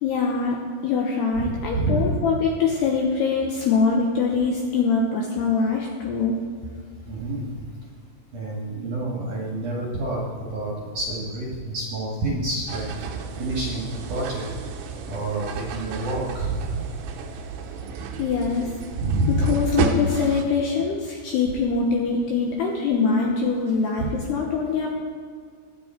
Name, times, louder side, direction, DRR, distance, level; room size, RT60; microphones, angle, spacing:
voice 1, 0.0-0.6 0.8-6.3 18.2-18.7 19.3-24.9, left 5 dB, 75° left, 0 dB, 2.5 m, -23 dB
voice 2, 1.7-2.1 7.1-7.5 8.3-12.8 13.4-14.5 15.1-16.8 18.9-19.5 24.0-24.1, right 2 dB, 60° right, -4 dB, 2.3 m, -27 dB
sound 1, 12.7-20.4, right 4 dB, 75° right, 2.9 m, -31 dB
21.0 x 8.3 x 4.4 m, 2.1 s
omnidirectional pair, 5.9 m